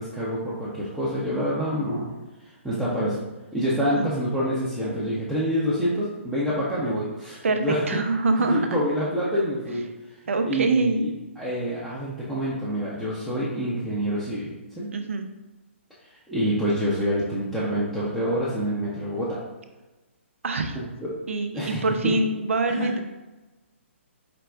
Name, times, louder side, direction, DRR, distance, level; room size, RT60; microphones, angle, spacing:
voice 1, 0.0-2.1 2.4-3.2 3.5-8.0 8.4-9.8 10.4-11.1 11.4-14.9 16.0-19.4 20.7-21.1 21.5-22.1 22.7-22.9, equal, 5° right, -10 dB, 0.7 m, -27 dB
voice 2, 7.4-8.7 10.3-11.1 14.9-15.3 20.4-20.8 21.3-23.0, right 3 dB, 75° right, 6 dB, 0.5 m, -24 dB
5.0 x 2.2 x 3.3 m, 1.1 s
hypercardioid pair, 140°, 7 cm